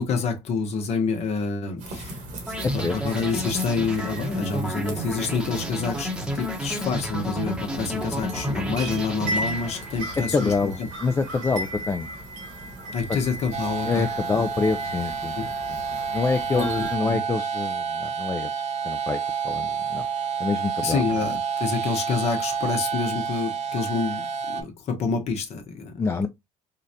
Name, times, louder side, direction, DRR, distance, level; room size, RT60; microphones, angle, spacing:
voice 1, 0.0-2.2 2.7-10.9 12.9-14.1 14.3-14.4 15.4-15.5 16.5-17.2 20.8-25.9, left 5 dB, 55° left, 0.9 m, -28 dB
sound 1, 1.8-17.0, right 1 dB, 75° right, 1.4 m, -37 dB
sound 2, 2.5-10.1, equal, 5° right, 0.8 m, -31 dB
voice 2, 10.2-12.1 13.9-15.3 15.7-18.5 18.8-19.2 19.4-20.1 20.4-21.0 26.0-26.3, left 4 dB, 20° left, 0.3 m, -26 dB
sound 3, 13.5-24.6, right 6 dB, 60° right, 0.6 m, -29 dB
3.8 x 2.1 x 2.7 m
supercardioid pair, 90°, 13 cm